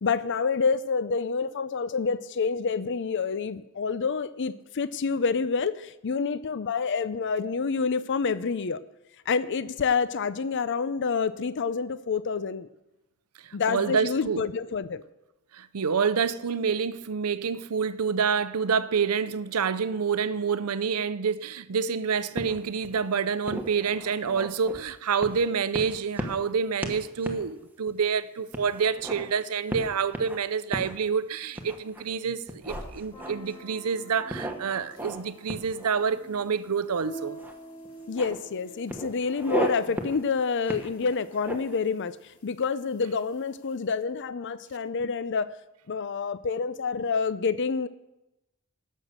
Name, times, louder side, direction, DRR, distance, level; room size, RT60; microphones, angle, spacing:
voice 1, 0.0-8.8 9.3-12.7 13.5-15.0 38.1-45.5 45.9-47.9, left 5 dB, 55° left, 0.5 m, -28 dB
voice 2, 13.4-14.4 15.5-37.4, right 6 dB, 85° right, 0.6 m, -28 dB
sound 1, 22.3-23.0 23.4-24.8 25.2-25.5 25.7-26.5 26.8-27.0 27.2-27.4 27.9-28.0 28.5-29.3 29.7-30.4 30.7-30.9 31.5-32.0 32.5-33.6 34.3-35.2 35.5-36.4 37.4-37.5 37.8-38.4 38.9-39.7 40.0-40.2 40.7-41.8, right 1 dB, 10° right, 1.3 m, -35 dB
sound 2, 32.4-34.5 34.9-44.5 47.3-47.4, left 1 dB, 85° left, 2.4 m, -55 dB
sound 3, 33.1-38.9, right 1 dB, 25° left, 1.6 m, -46 dB
16.5 x 6.5 x 6.6 m
head